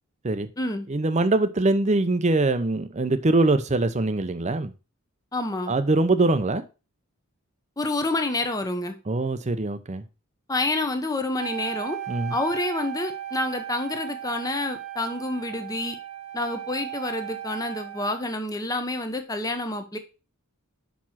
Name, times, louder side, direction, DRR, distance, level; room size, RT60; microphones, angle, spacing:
voice 1, 0.9-4.7 5.7-6.7 9.1-10.0 12.1-12.4, right 2 dB, 30° right, 0.6 m, -23 dB
voice 2, 5.3-5.7 7.8-9.0 10.5-12.0 12.3-16.0 16.3-20.0, left 2 dB, 15° left, 0.8 m, -28 dB
Wind instrument woodwind instrument, 11.4-18.3, right 11 dB, 70° right, 0.9 m, -36 dB
6.0 x 4.8 x 5.7 m
head